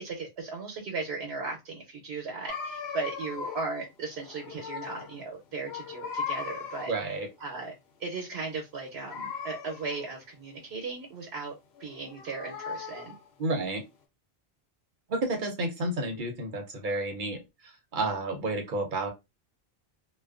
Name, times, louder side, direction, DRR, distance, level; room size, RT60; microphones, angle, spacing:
voice 1, 0.0-6.9 7.4-7.7 8.0-13.1, right 4 dB, 90° right, 0.9 m, -37 dB
sound 1, 2.5-3.8 4.1-5.2 5.5-7.1 9.0-10.2 11.8-13.3, left 6 dB, 85° left, 0.9 m, -38 dB
voice 2, 6.9-7.3 13.4-13.8 15.1-17.4 17.9-19.1, right 2 dB, 55° right, 0.7 m, -30 dB
2.4 x 2.2 x 2.3 m
omnidirectional pair, 1.0 m